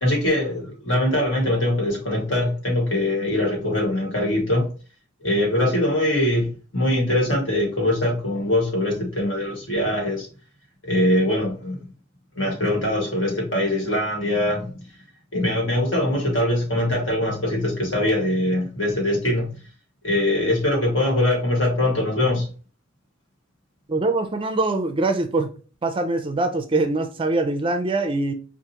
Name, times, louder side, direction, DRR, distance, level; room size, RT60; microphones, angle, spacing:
voice 1, 0.0-4.7 5.2-10.3 10.8-11.9 12.4-14.9 15.3-19.6 20.0-22.5, left 1 dB, 70° left, 1.8 m, -22 dB
voice 2, 23.9-25.5 25.8-28.3, right 2 dB, 25° right, 0.4 m, -23 dB
4.7 x 2.5 x 2.8 m
head